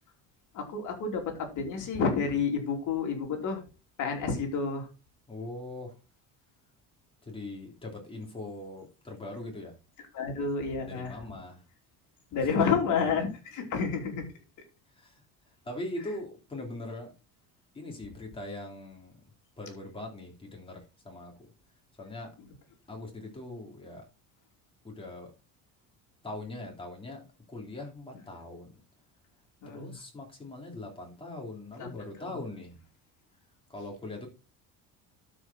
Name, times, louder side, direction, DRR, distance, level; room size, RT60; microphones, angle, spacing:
voice 1, 0.5-3.6 4.0-4.9 10.1-11.3 12.3-14.2 22.4-22.5 29.6-30.0 31.8-31.9, left 5 dB, 50° left, 3 dB, 3.2 m, -30 dB
voice 2, 5.3-6.0 7.2-9.7 10.8-11.6 15.0-15.2 15.6-17.1 17.7-19.1 19.6-21.5 22.0-22.3 22.9-24.1 24.8-25.3 26.2-27.2 27.5-28.7 29.7-32.8 33.7-34.3, left 2 dB, 15° left, 0 dB, 3.3 m, -41 dB
12.5 x 5.2 x 4.2 m, 0.30 s
cardioid pair, 150°, 37 cm